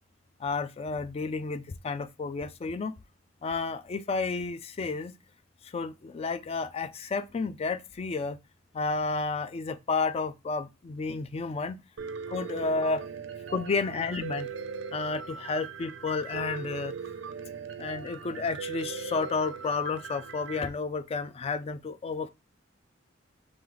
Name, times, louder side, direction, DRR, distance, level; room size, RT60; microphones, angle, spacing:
voice 1, 0.4-2.9 3.4-5.1 5.6-8.4 8.7-11.8 12.3-13.0 13.5-14.5 14.9-16.9 17.8-22.3, left 4 dB, 30° left, 0.3 m, -31 dB
Piano, 12.0-20.7, right 6 dB, 75° right, 0.5 m, -39 dB
3.1 x 3.1 x 3.8 m
head